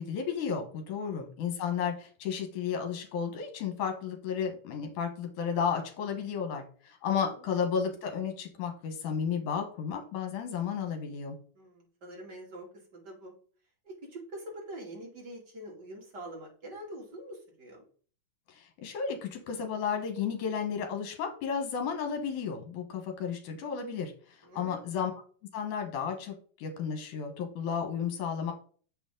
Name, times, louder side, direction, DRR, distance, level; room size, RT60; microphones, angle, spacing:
voice 1, 0.0-11.4 18.5-24.1 24.5-25.1 25.5-26.3 26.6-28.5, left 7 dB, 75° left, 5 dB, 2.7 m, -33 dB
voice 2, 1.0-1.3 7.1-7.4 11.5-12.7 12.9-13.3 13.8-17.9 24.4-24.8, right 1 dB, 35° right, -1 dB, 2.9 m, -45 dB
8.0 x 6.4 x 3.8 m, 0.43 s
omnidirectional pair, 3.7 m